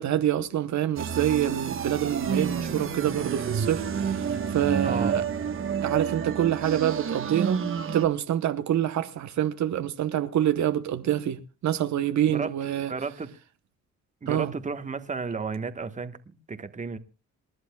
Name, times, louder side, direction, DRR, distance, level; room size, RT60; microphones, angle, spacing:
voice 1, 0.0-5.2 5.8-7.6 7.9-12.9 14.3-14.5, right 11 dB, 70° right, 1.0 m, -26 dB
sound 1, 1.0-8.1, right 7 dB, 45° right, 1.3 m, -29 dB
voice 2, 4.8-5.2 12.3-12.5 12.9-13.3 14.2-17.0, right 4 dB, 25° right, 1.3 m, -33 dB
28.0 x 11.0 x 2.3 m
cardioid pair, 90°, 30 cm